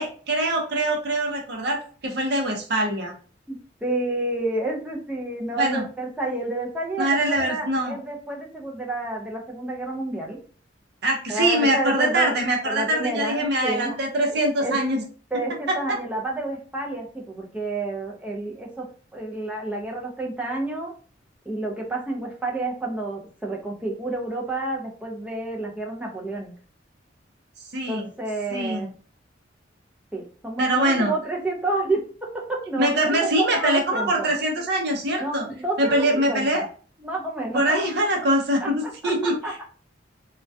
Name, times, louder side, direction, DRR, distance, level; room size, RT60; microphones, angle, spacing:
voice 1, 0.0-3.1 5.6-5.8 7.0-8.0 11.0-15.0 15.7-16.0 27.7-28.1 28.5-28.9 30.6-31.1 32.8-35.4 35.8-36.6 37.5-39.4, right 1 dB, 60° right, 2 dB, 0.6 m, -23 dB
voice 2, 3.8-10.4 11.3-12.3 12.6-13.9 14.6-14.8 15.3-18.9 19.1-20.9 21.5-26.5 27.9-28.9 30.1-32.0 32.3-34.3 35.2-36.7 37.0-37.7 38.6-39.6, right 2 dB, 5° right, -1 dB, 0.4 m, -29 dB
2.2 x 2.2 x 2.5 m, 0.41 s
head